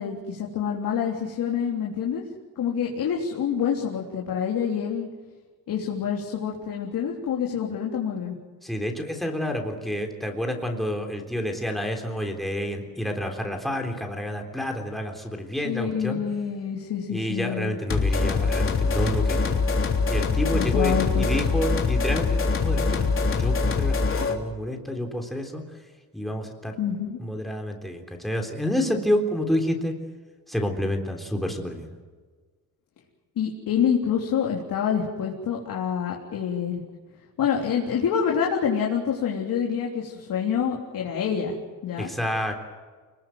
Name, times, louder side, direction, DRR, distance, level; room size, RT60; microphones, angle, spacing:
voice 1, 0.0-2.2 2.6-5.1 5.7-8.4 15.6-17.8 20.5-21.3 26.8-27.2 33.4-36.8 37.4-41.5 41.8-42.1, left 7 dB, 70° left, -1 dB, 3.6 m, -27 dB
voice 2, 8.6-16.2 17.1-19.6 20.1-25.6 26.1-26.8 27.2-29.9 30.5-32.0 42.0-42.6, left 1 dB, ahead, 2 dB, 3.6 m, -29 dB
sound 1, 17.9-24.4, left 4 dB, 35° left, 3.3 m, -23 dB
28.5 x 20.0 x 7.9 m, 1.4 s
cardioid pair, 150°, 35 cm